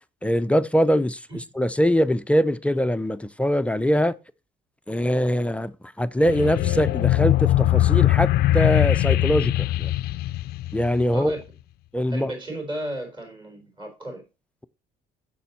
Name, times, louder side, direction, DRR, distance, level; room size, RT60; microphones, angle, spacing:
voice 1, 0.2-1.2 1.6-4.1 4.9-5.7 6.0-9.9 10.7-11.3 11.9-12.3, equal, 5° left, 0.4 m, -22 dB
sound 1, 6.2-11.2, left 15 dB, 70° left, 0.4 m, -21 dB
voice 2, 11.1-11.4 12.1-14.2, right 1 dB, 25° right, 4.3 m, -34 dB
6.8 x 6.8 x 4.2 m
cardioid pair, 110°, 17 cm